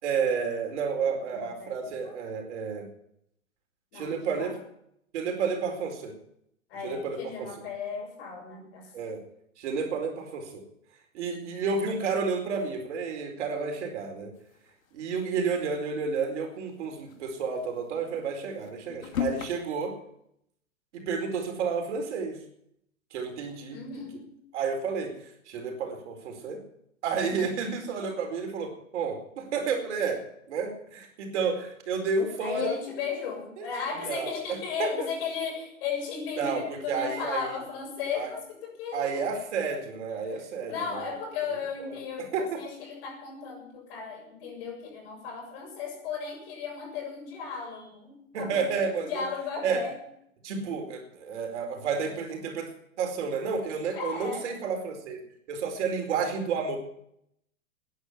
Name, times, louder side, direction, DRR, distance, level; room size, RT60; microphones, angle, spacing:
voice 1, 0.0-2.9 3.9-4.5 5.1-6.1 6.8-7.5 8.9-9.2 9.6-10.6 11.1-14.3 14.9-19.9 20.9-22.4 23.1-23.8 24.5-26.6 27.0-30.2 30.5-32.8 33.6-33.7 34.0-34.3 34.8-34.9 36.4-36.6 36.9-37.5 38.1-38.3 38.9-41.1 41.8-41.9 42.3-42.6 48.3-49.2 49.6-49.8 50.4-52.7 53.0-55.2 55.5-56.8, right 5 dB, 60° right, 4 dB, 4.6 m, -31 dB
voice 2, 1.0-1.8 2.0-2.1 3.9-4.6 6.7-8.9 23.7-24.3 32.4-39.3 40.3-48.7 49.0-50.0 53.9-54.5, left 6 dB, 45° left, 2 dB, 7.1 m, -36 dB
sound 1, 14.4-15.5 15.9-16.0 16.2-16.3 16.9-19.5, left 10 dB, 85° left, 2.8 m, -37 dB
13.0 x 10.5 x 9.9 m, 0.74 s
hypercardioid pair, 150°, 40 cm